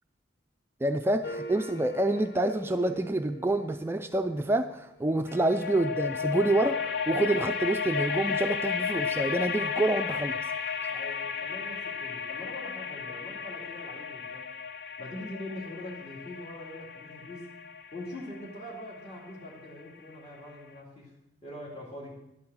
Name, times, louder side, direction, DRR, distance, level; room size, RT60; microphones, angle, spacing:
voice 1, 0.8-10.7, right 2 dB, 10° right, 7 dB, 0.4 m, -28 dB
sound 1, 1.2-4.5 5.3-20.2, left 6 dB, 55° left, 0.5 m, -34 dB
voice 2, 10.9-14.5 15.0-17.5 17.9-21.1 21.4-22.2, left 1 dB, 35° left, -5 dB, 2.6 m, -43 dB
11.5 x 8.6 x 6.2 m, 0.86 s
head